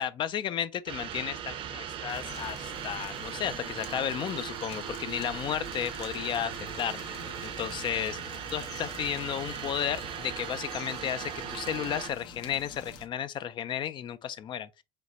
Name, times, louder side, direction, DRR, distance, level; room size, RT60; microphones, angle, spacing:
voice 1, 0.0-7.0 7.4-14.7, left 9 dB, 45° left, 0.4 m, -33 dB
sound 1, 0.9-12.1, right 9 dB, 50° right, 0.7 m, -39 dB
sound 2, 2.1-13.1, left 5 dB, 75° left, 1.2 m, -46 dB
5.1 x 3.2 x 2.9 m
cardioid pair, 115°, 12 cm